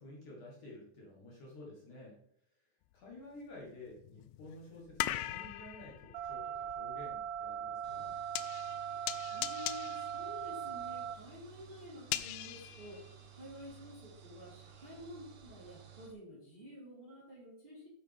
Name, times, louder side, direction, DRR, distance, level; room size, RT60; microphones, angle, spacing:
voice 1, 0.0-2.2 2.5-8.1, left 1 dB, 55° left, -3 dB, 2.7 m, -52 dB
sound 1, 2.9-3.0 3.6-13.8 14.1-15.7 16.1-16.2, left 15 dB, 90° left, 2.2 m, -42 dB
sound 2, 6.1-11.1, right 9 dB, 90° right, 3.3 m, -40 dB
sound 3, 7.8-16.1, right 9 dB, 65° right, 2.9 m, -56 dB
voice 2, 9.3-17.9, left 1 dB, 10° right, -10 dB, 3.7 m, -51 dB
9.3 x 8.3 x 3.5 m, 0.69 s
omnidirectional pair, 5.1 m